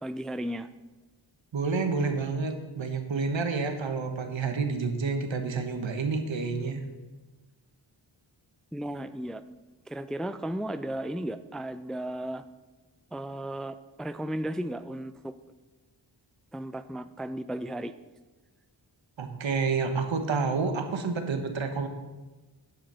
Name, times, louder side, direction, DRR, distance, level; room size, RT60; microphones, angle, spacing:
voice 1, 0.0-0.7 8.7-9.4 9.9-12.4 13.1-15.3 16.5-17.9, right 1 dB, ahead, 12 dB, 0.4 m, -35 dB
voice 2, 1.5-6.8 19.2-21.9, right 4 dB, 70° right, 6 dB, 1.3 m, -29 dB
10.0 x 6.5 x 5.6 m, 1.2 s
cardioid pair, 40°, 46 cm